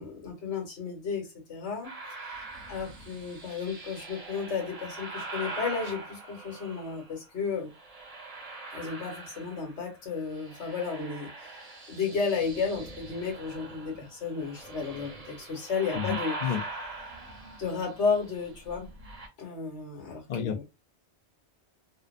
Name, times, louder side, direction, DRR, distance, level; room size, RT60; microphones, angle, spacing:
voice 1, 0.0-7.7 8.7-16.6 17.6-18.9 19.4-20.6, left 5 dB, 80° left, 1.3 m, -33 dB
sound 1, 1.8-7.2 7.7-9.9 10.2-19.3, right 2 dB, 40° right, 0.7 m, -42 dB
voice 2, 15.9-16.6 20.3-20.6, left 8 dB, 55° left, 0.5 m, -31 dB
2.7 x 2.0 x 2.4 m
omnidirectional pair, 1.1 m